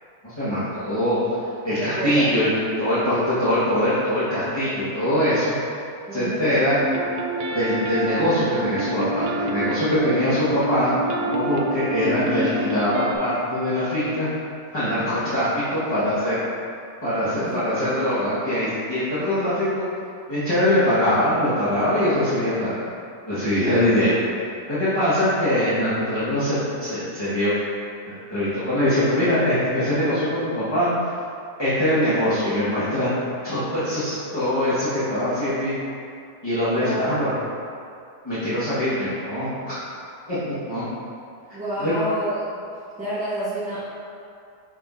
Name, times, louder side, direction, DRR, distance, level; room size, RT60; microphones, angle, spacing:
voice 1, 0.2-1.4 1.6-2.5 2.8-5.5 6.1-6.8 7.5-10.9 11.2-14.3 14.7-16.4 17.0-19.8 20.3-22.9 23.3-24.2 24.7-27.5 28.1-31.1 31.6-33.1 33.4-35.7 36.4-37.3 38.2-39.8 40.3-40.8 41.8-41.9, left 1 dB, 15° left, -14 dB, 1.4 m, -22 dB
voice 2, 1.7-2.3 6.1-6.6 17.4-17.6 36.8-37.1 41.5-42.6 43.0-44.0, equal, 5° right, -13 dB, 0.9 m, -29 dB
sound 1, 6.8-13.1, right 2 dB, 65° right, 0.9 m, -27 dB
7.2 x 5.6 x 2.7 m, 2.5 s
omnidirectional pair, 1.8 m